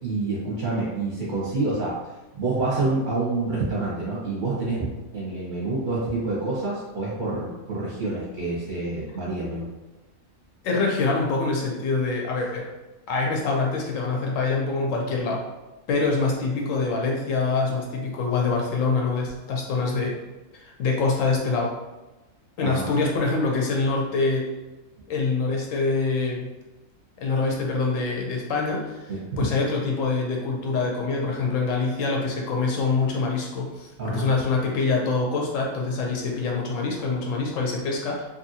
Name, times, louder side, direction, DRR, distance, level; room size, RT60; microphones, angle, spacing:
voice 1, 0.0-2.0 2.3-9.7 22.6-22.8 29.1-29.2 34.0-34.2, right 3 dB, 45° right, -7 dB, 0.8 m, -27 dB
voice 2, 10.6-12.7 13.1-15.4 15.9-20.2 20.5-21.7 22.6-24.5 25.1-26.5 27.2-28.9 29.4-38.2, left 3 dB, 75° left, 0 dB, 0.9 m, -25 dB
2.8 x 2.5 x 2.7 m, 1.1 s
omnidirectional pair, 1.4 m